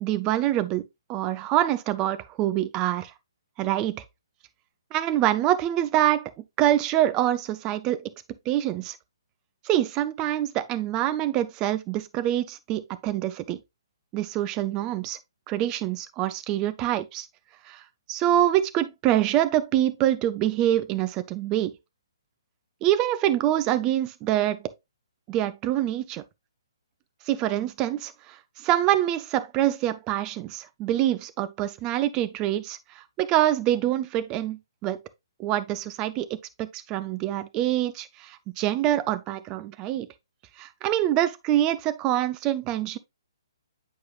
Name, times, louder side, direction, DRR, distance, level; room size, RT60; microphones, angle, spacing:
voice 1, 0.0-3.1 3.6-4.0 4.9-6.3 6.6-8.1 8.5-9.0 9.6-13.6 14.1-15.2 15.5-17.3 17.7-17.8 18.1-21.7 22.8-24.6 25.3-26.2 27.3-35.0 35.4-36.3 36.6-40.1 40.6-43.0, right 13 dB, 20° right, 0.5 m, -25 dB
8.3 x 4.7 x 2.4 m
figure-of-eight pair, 130°, 3 cm